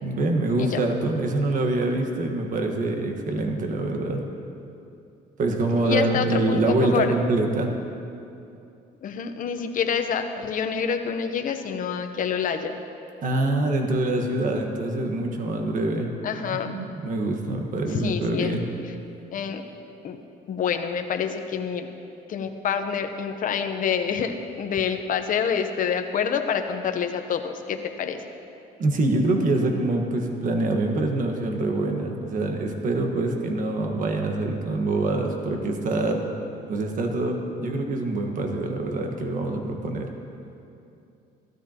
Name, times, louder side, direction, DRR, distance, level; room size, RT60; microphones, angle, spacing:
voice 1, 0.0-4.2 5.4-7.7 13.2-16.1 16.5-18.6 28.8-36.2 36.7-40.1, right 2 dB, 50° right, 3 dB, 1.5 m, -25 dB
voice 2, 5.8-7.1 9.0-12.8 16.2-16.7 18.0-18.6 19.3-19.6 20.0-20.2 20.5-21.9 22.3-28.3, left 7 dB, 50° left, 7 dB, 0.9 m, -27 dB
16.5 x 13.0 x 2.9 m, 2.6 s
cardioid pair, 110°, 17 cm